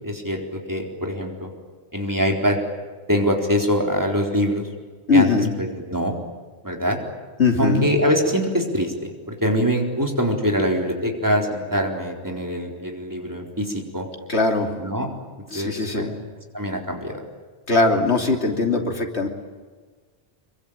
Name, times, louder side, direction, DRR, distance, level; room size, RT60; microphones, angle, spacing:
voice 1, 0.0-1.5 1.9-2.6 3.1-4.7 5.1-5.3 5.6-6.2 6.6-7.0 7.6-14.1 14.8-15.1 15.5-16.1 16.5-17.1, equal, 15° right, 1 dB, 4.1 m, -23 dB
voice 2, 5.1-5.5 7.4-7.8 14.3-14.7 15.5-16.1 17.7-19.3, left 3 dB, 85° left, 3 dB, 3.3 m, -20 dB
26.0 x 23.5 x 8.9 m, 1.4 s
omnidirectional pair, 1.1 m